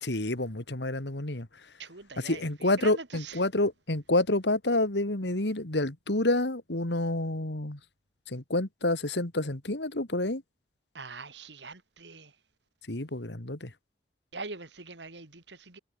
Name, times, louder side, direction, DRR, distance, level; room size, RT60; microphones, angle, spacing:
voice 1, 0.0-1.7 2.2-7.8 8.3-10.4 12.9-13.7, left 2 dB, 80° left, 2.5 m, -29 dB
voice 2, 1.8-3.4 10.9-12.4 14.3-15.8, right 4 dB, 85° right, 3.6 m, -43 dB
head